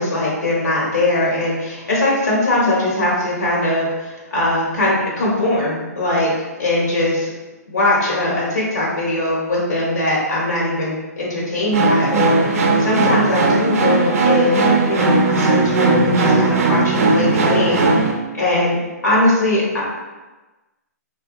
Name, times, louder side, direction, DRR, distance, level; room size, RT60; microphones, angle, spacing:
voice 1, 0.0-6.3 6.6-7.3 7.7-18.7 19.0-19.8, left 2 dB, 90° left, -5 dB, 1.0 m, -20 dB
sound 1, 11.7-18.1, right 3 dB, 60° right, 0.4 m, -17 dB
2.8 x 2.1 x 2.5 m, 1.2 s
hypercardioid pair, 140°, 9 cm